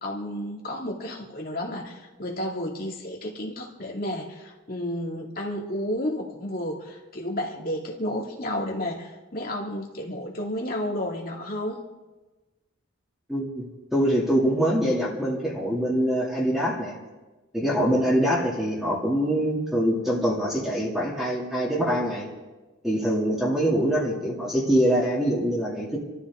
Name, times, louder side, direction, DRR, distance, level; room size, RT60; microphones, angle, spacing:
voice 1, 0.0-11.8, left 1 dB, 45° left, -1 dB, 2.6 m, -32 dB
voice 2, 13.3-17.0 17.5-22.3 22.8-26.0, equal, ahead, -5 dB, 2.9 m, -24 dB
28.0 x 13.5 x 3.9 m, 1.2 s
head